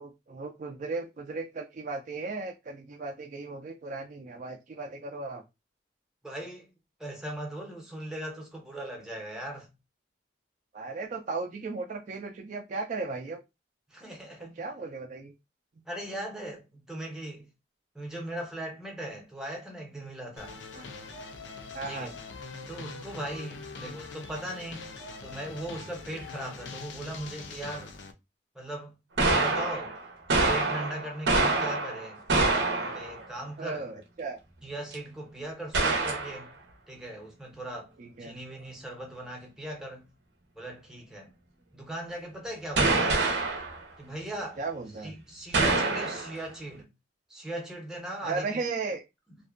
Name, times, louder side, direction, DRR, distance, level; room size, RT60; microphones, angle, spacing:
voice 1, 0.0-5.4 10.7-13.4 14.4-15.3 20.7-20.8 21.7-22.1 33.6-34.4 38.0-38.4 44.6-45.1 48.2-49.0, right 3 dB, 45° right, 0.3 m, -36 dB
voice 2, 6.2-6.7 7.0-9.7 13.9-14.5 15.9-17.5 17.9-20.6 21.9-22.1 22.7-24.9 25.2-28.0 28.5-29.9 30.3-32.2 32.7-33.9 34.6-36.6 36.9-37.9 38.2-40.1 40.5-41.3 41.7-43.3 44.0-44.6 45.0-46.9 47.3-48.6, right 1 dB, 5° right, 0.7 m, -39 dB
sound 1, 20.4-28.1, left 4 dB, 75° left, 0.4 m, -43 dB
sound 2, 29.2-33.3 34.9-35.0 35.7-36.4 42.8-43.8 45.5-46.4, right 3 dB, 75° right, 0.7 m, -26 dB
2.5 x 2.1 x 2.4 m
head